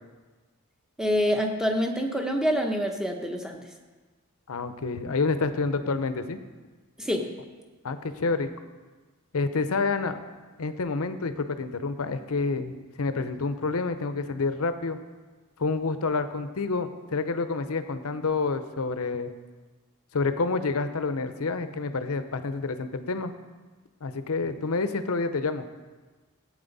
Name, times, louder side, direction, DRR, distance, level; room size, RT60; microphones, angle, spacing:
voice 1, 1.0-3.6 7.0-7.3, equal, 5° right, 3 dB, 0.9 m, -26 dB
voice 2, 4.5-6.4 7.8-8.5 9.3-10.2 10.6-15.0 15.6-19.3 20.1-23.3 24.0-25.6, left 4 dB, 80° left, 10 dB, 0.7 m, -28 dB
14.5 x 8.6 x 4.1 m, 1.3 s
head